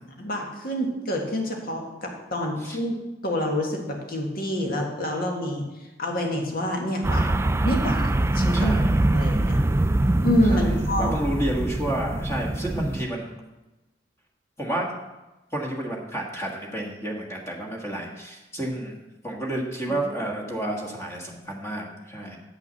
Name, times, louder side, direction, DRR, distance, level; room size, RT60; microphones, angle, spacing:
voice 1, 0.0-3.0 3.2-5.6 6.0-7.3 7.6-8.7 9.1-9.6 10.2-11.2 19.9-20.0, left 1 dB, 55° left, 1 dB, 1.8 m, -27 dB
sound 1, 7.0-13.0, right 1 dB, 15° right, 0.3 m, -23 dB
voice 2, 8.5-9.0 10.5-13.3 14.6-14.9 15.5-19.0 19.2-22.4, right 1 dB, 15° left, -1 dB, 1.5 m, -30 dB
8.2 x 6.0 x 6.8 m, 1.1 s
head